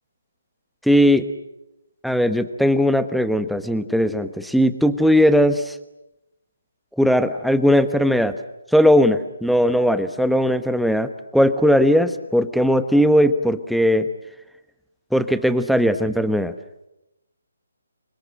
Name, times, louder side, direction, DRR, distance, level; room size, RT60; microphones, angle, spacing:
voice 1, 0.8-1.3 2.0-5.8 7.0-8.3 8.7-14.1 15.1-16.5, equal, ahead, 11 dB, 1.2 m, -18 dB
28.0 x 23.5 x 7.7 m, 0.92 s
figure-of-eight pair, 145°, 0 cm